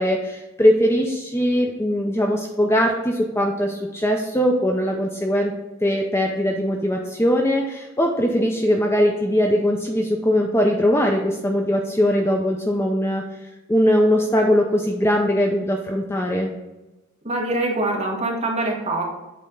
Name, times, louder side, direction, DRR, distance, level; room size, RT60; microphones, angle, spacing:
voice 1, 0.0-5.5 5.8-13.3 13.7-16.5, equal, 10° left, 1 dB, 0.5 m, -20 dB
voice 2, 17.2-19.0, right 2 dB, 30° right, -2 dB, 1.6 m, -24 dB
8.4 x 3.4 x 5.3 m, 1.0 s
head